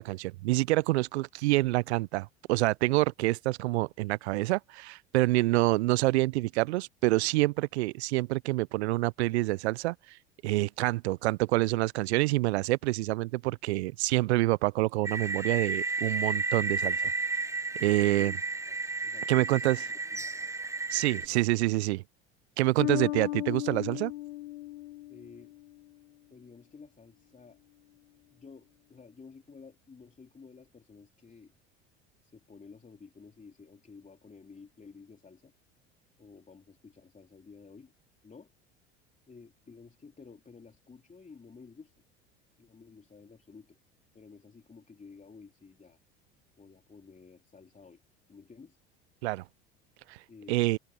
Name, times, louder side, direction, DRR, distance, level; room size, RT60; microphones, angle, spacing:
voice 1, 0.0-10.2 10.4-17.1 17.8-18.3 19.3-19.8 20.9-22.0 22.6-24.1 49.2-49.4 50.1-50.2 50.5-50.8, right 20 dB, 80° right, 0.5 m, -27 dB
sound 1, 15.0-21.3, right 3 dB, 10° right, 0.9 m, -32 dB
voice 2, 17.7-18.4 18.7-18.8 19.0-19.6 20.1-20.3 25.1-25.5 26.3-27.6 28.3-31.5 32.2-35.5 36.2-37.9 38.2-38.5 39.3-42.0 42.6-43.8 44.1-46.0 46.6-48.0 48.3-48.8 50.3-50.6, left 5 dB, 25° left, 3.3 m, -52 dB
Bass guitar, 22.8-25.8, left 17 dB, 85° left, 0.7 m, -35 dB
open air
hypercardioid pair, 75°, 32 cm